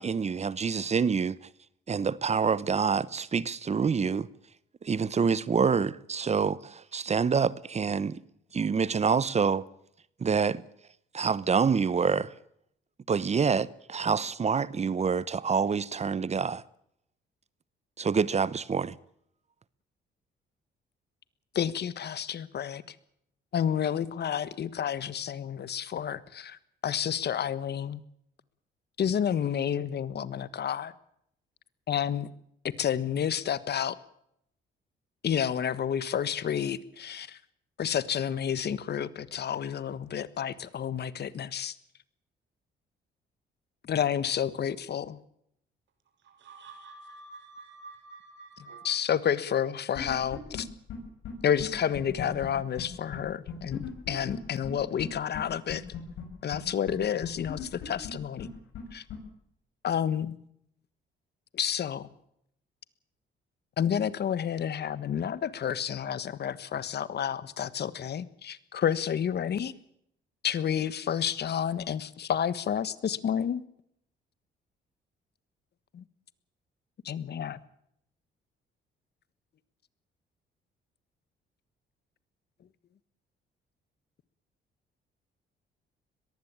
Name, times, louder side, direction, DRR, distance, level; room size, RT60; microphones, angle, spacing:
voice 1, 0.0-1.4 1.9-4.3 4.8-8.2 8.5-9.6 10.2-10.6 11.1-12.3 13.1-16.6 18.0-18.9, right 6 dB, 35° right, 1.0 m, -27 dB
voice 2, 21.5-22.8 23.5-26.6 26.8-28.0 29.0-30.9 31.9-32.3 32.8-33.9 35.2-37.4 37.8-41.7 43.9-45.2 48.8-50.7 51.4-55.8 56.4-58.5 58.9-59.0 59.8-60.3 61.5-62.1 63.8-69.7 70.4-73.6 75.9-76.0 77.0-77.6, left 9 dB, 55° left, 1.5 m, -30 dB
voice 3, 46.2-48.8, right 3 dB, 65° right, 6.4 m, -48 dB
sound 1, 49.9-50.6 50.9-51.0 51.2-51.3 51.6-51.7 51.9-52.5 52.8-52.9 53.1-53.2 53.5-54.3 54.6-54.7 55.0-55.1 55.3-55.4 55.7-56.2 56.5-56.6 56.9-57.0 57.2-58.1 58.4-58.5 58.7-58.8 59.1-59.2, left 10 dB, 85° left, 7.0 m, -37 dB
22.0 x 15.5 x 8.8 m
cardioid pair, 90°, 20 cm